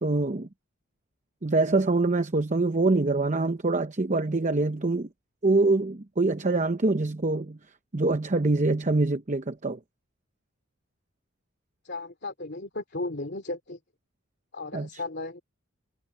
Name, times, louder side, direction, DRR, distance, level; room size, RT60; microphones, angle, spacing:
voice 1, 0.0-0.5 1.4-5.1 5.4-7.6 7.9-9.8 14.7-14.9, right 2 dB, 35° right, 0.8 m, -24 dB
voice 2, 11.8-13.8 14.5-15.4, left 2 dB, 50° left, 2.9 m, -35 dB
head